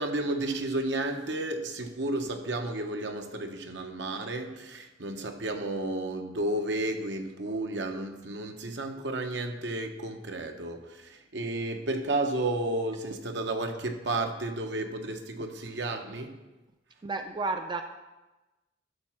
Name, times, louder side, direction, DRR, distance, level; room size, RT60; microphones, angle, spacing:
voice 1, 0.0-16.3, right 2 dB, 70° right, 5 dB, 0.9 m, -32 dB
voice 2, 17.0-17.8, right 3 dB, 25° right, 6 dB, 0.4 m, -31 dB
12.0 x 4.1 x 5.9 m, 1.1 s
head